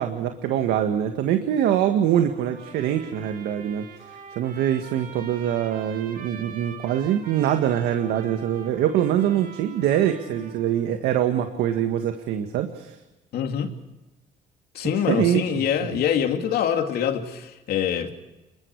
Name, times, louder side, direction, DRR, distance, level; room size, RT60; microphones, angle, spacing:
voice 1, 0.0-13.0 14.9-15.6 15.9-16.0, right 10 dB, 85° right, 1.8 m, -24 dB
Trumpet, 2.3-10.9, right 6 dB, 60° right, 6.3 m, -44 dB
voice 2, 13.3-13.7 14.7-18.1, left 8 dB, 70° left, 2.8 m, -25 dB
30.0 x 21.5 x 4.8 m
cardioid pair, 110°, 17 cm